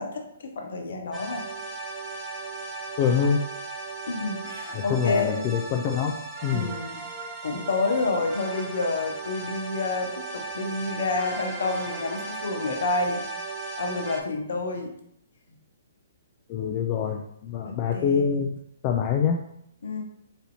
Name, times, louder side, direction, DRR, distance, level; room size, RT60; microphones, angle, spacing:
voice 1, 0.0-1.5 4.1-5.5 6.5-7.1 7.4-13.2 13.8-14.9 17.6-18.3 19.8-20.0, left 3 dB, 65° left, 3 dB, 0.9 m, -29 dB
sound 1, 1.1-14.2, right 3 dB, 10° right, 0.9 m, -36 dB
voice 2, 3.0-3.4 4.7-6.1 6.4-6.7 16.5-19.4, left 7 dB, 35° left, 3 dB, 0.4 m, -25 dB
4.2 x 2.7 x 4.1 m, 0.73 s
figure-of-eight pair, 130°, 0 cm